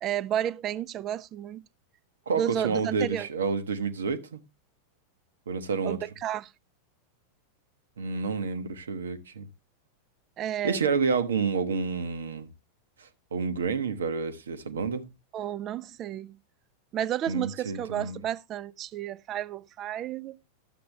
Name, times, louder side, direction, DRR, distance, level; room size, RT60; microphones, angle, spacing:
voice 1, 0.0-1.6 2.3-3.3 5.8-6.5 10.4-10.8 15.3-16.4 16.9-20.4, right 11 dB, 30° right, 0.4 m, -32 dB
voice 2, 2.3-4.4 5.5-6.0 8.0-9.5 10.6-12.5 13.0-15.1 17.3-18.2, right 5 dB, 65° right, 0.9 m, -29 dB
12.0 x 7.8 x 3.2 m
figure-of-eight pair, 90°, 0 cm